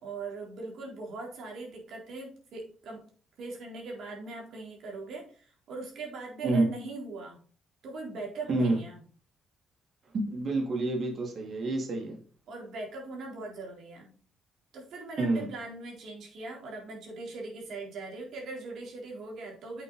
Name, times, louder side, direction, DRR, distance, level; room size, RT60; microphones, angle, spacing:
voice 1, 0.0-3.0 3.4-7.4 7.8-9.0 12.5-14.1 14.7-19.8, right 3 dB, 70° right, -1 dB, 3.8 m, -40 dB
voice 2, 8.5-8.8 10.1-12.2 15.2-15.5, right 2 dB, 55° right, 1 dB, 3.0 m, -28 dB
8.0 x 6.4 x 4.1 m, 0.41 s
cardioid pair, 90°, 0 cm